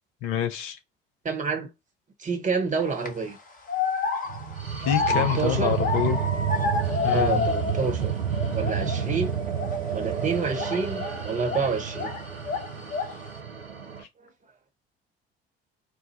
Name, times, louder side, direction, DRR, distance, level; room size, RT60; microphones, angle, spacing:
voice 1, 0.2-0.8 4.8-6.2 7.0-7.5, left 9 dB, 60° left, 0.8 m, -26 dB
voice 2, 1.2-1.7 2.2-3.4 5.1-5.8 7.1-8.1 8.5-9.4 9.9-12.1 14.2-14.3, right 5 dB, 25° right, 1.1 m, -28 dB
sound 1, 2.7-3.1 3.7-8.0 8.3-9.1 9.5-9.8 10.5-12.2 12.4-13.2, left 4 dB, 25° left, 1.0 m, -29 dB
sound 2, 4.3-14.0, right 7 dB, 90° right, 0.6 m, -30 dB
4.6 x 2.2 x 2.8 m
figure-of-eight pair, 55°, 29 cm